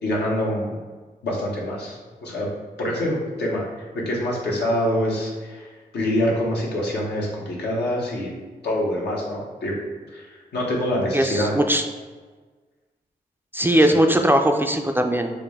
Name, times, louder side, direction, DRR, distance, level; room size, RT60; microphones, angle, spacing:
voice 1, 0.0-0.7 1.2-2.5 2.8-3.7 3.9-5.7 5.9-8.3 8.6-9.8 10.1-11.5 13.8-14.0, left 1 dB, 80° left, -3 dB, 1.0 m, -25 dB
voice 2, 11.1-11.8 13.5-15.3, right 1 dB, 10° right, 4 dB, 0.4 m, -19 dB
4.8 x 2.1 x 3.5 m, 1.4 s
cardioid pair, 55°, 17 cm